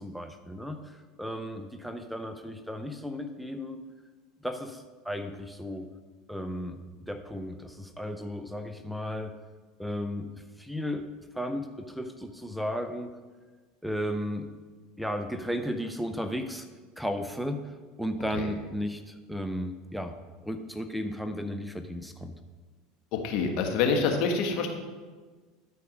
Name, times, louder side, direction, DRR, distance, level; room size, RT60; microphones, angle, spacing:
voice 1, 0.0-3.8 4.4-5.9 6.3-9.4 9.8-11.1 11.3-13.1 13.8-14.5 15.0-16.7 17.0-20.2 20.4-22.4, equal, ahead, 7 dB, 0.6 m, -34 dB
voice 2, 23.1-24.7, left 5 dB, 65° left, 4 dB, 1.4 m, -26 dB
12.5 x 4.6 x 5.1 m, 1.4 s
supercardioid pair, 105°, 0 cm